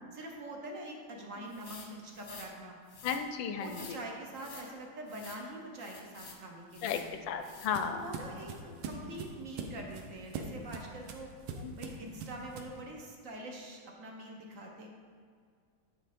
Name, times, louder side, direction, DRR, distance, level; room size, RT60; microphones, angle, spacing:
voice 1, 0.1-3.0 3.6-7.2 7.9-11.3 11.7-14.9, right 1 dB, 50° right, 0 dB, 1.1 m, -45 dB
sound 1, 1.5-2.5 2.9-3.2 3.6-4.0 4.3-4.7 5.1-5.4 5.8-6.4 6.7-7.1 7.4-7.7, left 5 dB, 45° left, 1.0 m, -50 dB
voice 2, 3.0-4.0 6.8-7.0 7.3-8.1 11.6-11.7, left 7 dB, 75° left, 8 dB, 1.2 m, -34 dB
sound 2, 6.8-12.8, right 4 dB, 90° right, 1.6 m, -43 dB
9.9 x 5.9 x 4.2 m, 2.1 s
omnidirectional pair, 2.2 m